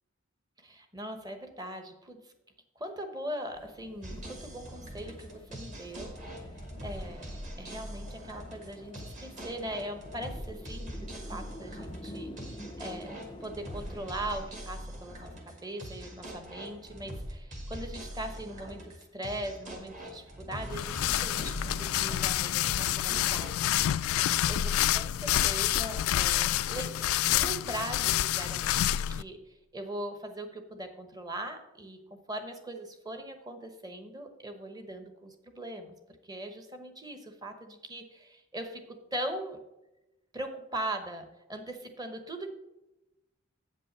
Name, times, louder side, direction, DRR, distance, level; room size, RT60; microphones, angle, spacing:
voice 1, 0.6-2.3 2.8-6.1 6.8-7.3 7.6-13.1 13.4-23.9 24.5-35.9 36.2-39.6 40.3-42.5, right 1 dB, 20° right, 6 dB, 0.9 m, -40 dB
sound 1, 3.6-14.5, left 1 dB, 25° left, 0.5 m, -48 dB
sound 2, 4.0-23.5, equal, 35° right, 1.6 m, -43 dB
sound 3, 20.7-29.2, left 12 dB, 90° left, 0.3 m, -28 dB
8.2 x 5.3 x 6.7 m, 0.93 s
head